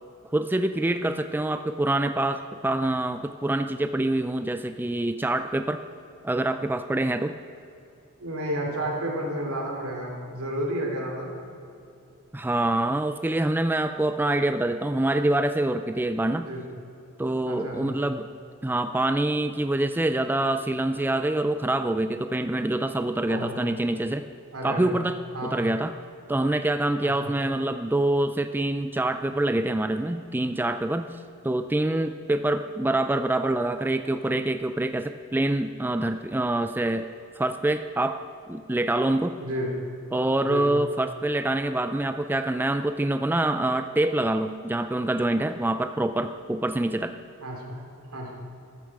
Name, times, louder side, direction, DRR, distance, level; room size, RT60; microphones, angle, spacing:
voice 1, 0.3-5.8 6.2-7.4 12.3-16.5 17.2-18.3 18.6-24.2 24.6-25.9 26.3-31.2 31.4-37.1 37.4-38.2 38.5-39.4 40.1-47.1, right 1 dB, 10° right, 9 dB, 0.3 m, -25 dB
voice 2, 8.2-11.3 16.4-16.6 17.5-17.9 23.3-23.6 24.5-24.9 25.3-25.6 27.0-27.3 39.4-39.7 40.4-40.6 47.4-47.8 48.1-48.3, right 1 dB, 80° right, 0 dB, 3.0 m, -31 dB
14.5 x 12.5 x 4.8 m, 2.6 s
head